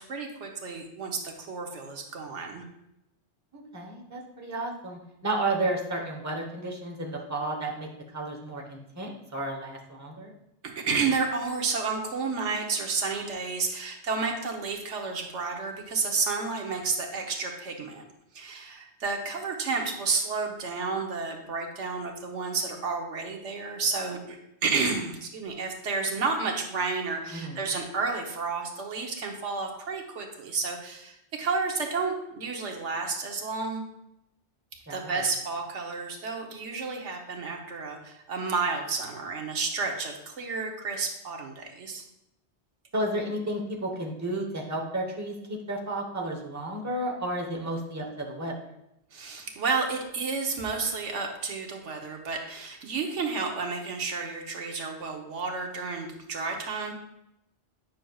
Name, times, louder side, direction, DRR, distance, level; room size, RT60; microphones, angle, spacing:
voice 1, 0.0-2.6 10.6-18.0 18.3-33.8 34.9-42.0 49.1-56.9, right 4 dB, 90° right, 2 dB, 1.3 m, -31 dB
voice 2, 3.5-10.3 27.3-27.6 34.9-35.1 42.9-48.5, right 1 dB, 15° right, 0 dB, 0.9 m, -32 dB
9.2 x 6.2 x 2.3 m, 0.84 s
omnidirectional pair, 1.2 m